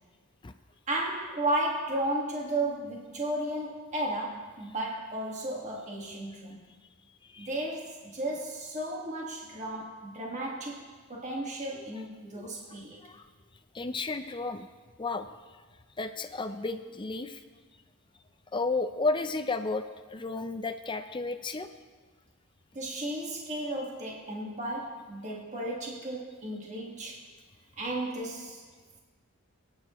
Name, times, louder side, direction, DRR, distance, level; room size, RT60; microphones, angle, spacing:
voice 1, 0.9-6.6 7.4-10.8 11.1-13.0 22.7-27.2 27.8-28.6, right 1 dB, 30° right, -2 dB, 1.8 m, -34 dB
voice 2, 13.7-14.7 15.0-15.3 16.0-17.4 18.5-21.7, left 3 dB, 20° left, 9 dB, 0.5 m, -33 dB
27.0 x 9.6 x 3.1 m, 1.5 s
head